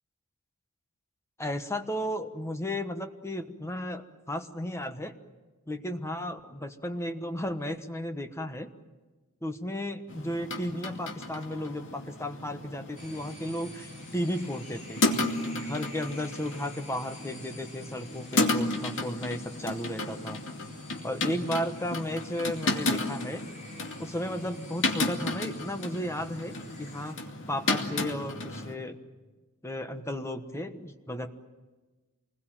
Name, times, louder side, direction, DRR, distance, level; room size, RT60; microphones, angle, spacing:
voice 1, 1.4-5.1 5.7-8.7 9.4-15.0 15.5-20.4 21.0-23.4 24.0-27.2 27.5-29.0 29.6-31.3, left 1 dB, 10° left, 7 dB, 1.2 m, -34 dB
Window hits by wind, 10.1-28.7, left 2 dB, 60° left, 2.5 m, -33 dB
sound 1, 13.0-27.1, left 2 dB, 35° left, 4.5 m, -50 dB
27.5 x 21.0 x 9.1 m, 1.3 s
head